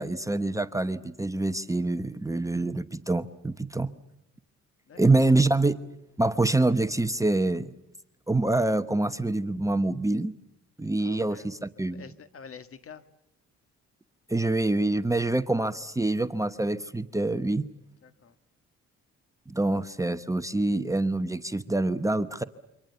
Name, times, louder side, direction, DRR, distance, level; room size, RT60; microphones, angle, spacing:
voice 1, 0.0-3.9 5.0-5.7 6.2-7.7 8.3-10.3 10.8-12.1 14.3-17.7 19.5-22.4, right 2 dB, 10° right, 10 dB, 1.0 m, -26 dB
voice 2, 4.9-5.3 11.0-11.5 11.9-13.0 18.0-18.4, left 6 dB, 50° left, 12 dB, 1.7 m, -47 dB
28.0 x 24.5 x 6.9 m, 0.84 s
cardioid pair, 90°, 30 cm